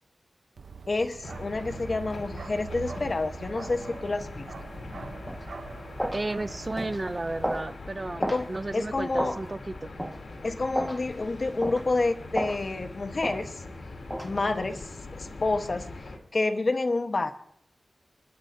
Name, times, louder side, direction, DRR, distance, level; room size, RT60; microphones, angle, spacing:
Bark, 0.6-7.6, right 5 dB, 90° right, 0.7 m, -43 dB
voice 1, 0.9-4.5 8.1-8.5 8.7-9.4 10.4-13.5 14.2-14.9 15.2-15.9 16.3-17.3, left 3 dB, 50° left, 6 dB, 1.0 m, -28 dB
sound 1, 1.2-16.2, left 2 dB, 80° left, 2.4 m, -42 dB
sound 2, 5.3-5.4 6.0-6.2 6.8-7.0 7.4-7.7 8.2-8.4 9.2-9.4 10.0-10.2 10.7-11.0 11.6-11.8 12.4-12.6 13.2-13.4 14.1-14.3, equal, 5° right, 1.4 m, -31 dB
voice 2, 6.1-9.9, right 2 dB, 35° right, 13 dB, 0.4 m, -33 dB
28.5 x 10.0 x 2.6 m, 0.71 s
wide cardioid pair, 95°, 0 cm